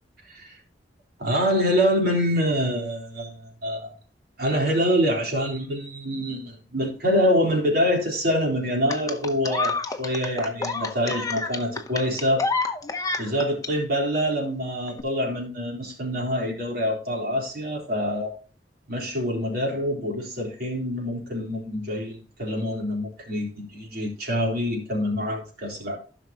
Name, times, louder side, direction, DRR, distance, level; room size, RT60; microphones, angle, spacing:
voice 1, 1.2-3.9 4.4-12.5 13.2-18.3 18.9-26.0, equal, 60° right, 3.7 m, -25 dB
sound 1, 8.9-13.7 14.9-15.0, left 4 dB, 20° left, 0.8 m, -28 dB
15.0 x 6.0 x 2.9 m
head